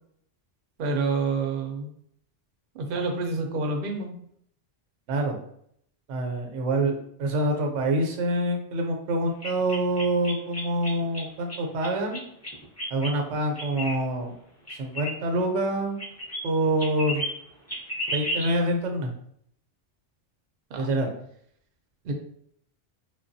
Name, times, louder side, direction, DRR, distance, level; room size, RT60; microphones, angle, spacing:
voice 1, 0.8-1.9 2.7-4.1 20.7-20.9 22.0-22.1, right 3 dB, 60° right, 2 dB, 0.6 m, -28 dB
voice 2, 5.1-5.4 6.1-12.2 12.9-14.3 14.8-16.0 16.4-17.2 18.1-19.1 20.8-21.1, right 1 dB, 90° right, 3 dB, 1.0 m, -26 dB
sound 1, 9.4-11.2 11.5-13.1 13.6-14.0 14.7-15.7 16.0-16.4 16.7-17.3 17.7-18.6, equal, 20° left, 0.5 m, -33 dB
3.2 x 2.2 x 2.6 m, 0.67 s
omnidirectional pair, 1.2 m